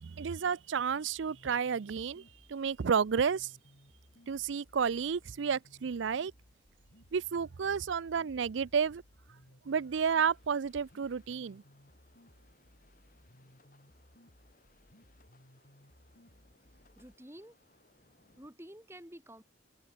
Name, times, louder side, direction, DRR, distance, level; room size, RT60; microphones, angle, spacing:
voice 1, 0.0-2.2 2.5-3.5 4.3-6.3 7.1-9.0 9.7-11.6, right 6 dB, 80° right, 0.5 m, -31 dB
sound 1, 1.1-17.1, equal, 60° left, 4.1 m, -62 dB
sound 2, 9.7-18.5, left 2 dB, 45° left, 6.9 m, -68 dB
voice 2, 17.0-17.5 18.4-19.4, right 1 dB, 15° right, 2.7 m, -50 dB
head